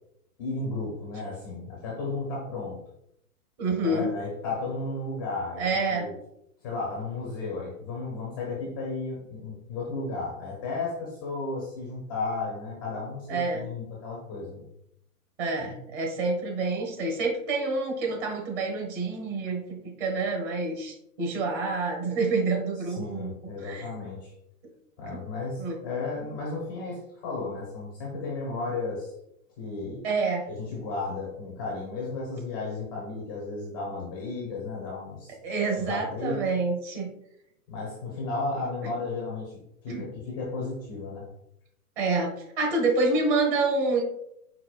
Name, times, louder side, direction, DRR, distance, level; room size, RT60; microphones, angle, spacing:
voice 1, 0.4-2.8 3.8-5.6 5.9-6.1 6.6-14.7 15.6-15.7 22.8-24.3 25.0-29.1 29.6-30.0 30.5-35.4 35.8-36.5 37.7-39.5 39.8-41.3, left 3 dB, 15° left, -3 dB, 0.4 m, -34 dB
voice 2, 3.6-4.1 5.6-6.1 13.3-13.7 15.4-19.6 20.0-23.3 23.6-23.9 25.6-25.8 30.0-30.4 35.4-37.1 39.9-40.0 42.0-44.0, right 3 dB, 35° right, 1 dB, 1.3 m, -27 dB
4.7 x 4.0 x 2.3 m, 0.79 s
hypercardioid pair, 140°, 45 cm